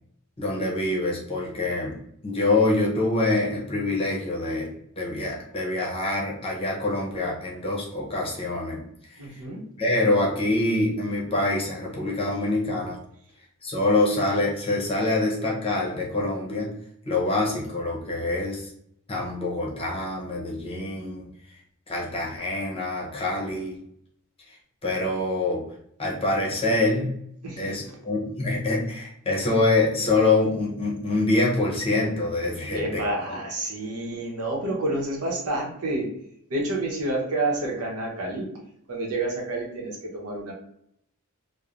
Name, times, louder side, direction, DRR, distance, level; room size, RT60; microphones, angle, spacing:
voice 1, 0.4-2.0 2.2-4.7 5.0-8.8 9.1-9.2 9.8-13.0 13.6-16.7 17.1-18.7 19.1-21.3 21.9-23.8 24.5-24.6 24.8-25.6 26.0-27.1 27.6-33.0 33.3-33.4, left 2 dB, 25° left, -3 dB, 0.7 m, -25 dB
voice 2, 9.2-9.6 27.4-28.0 32.7-36.1 36.5-38.5 38.9-40.5, right 2 dB, 90° right, -1 dB, 0.8 m, -29 dB
3.1 x 2.1 x 2.4 m, 0.72 s
head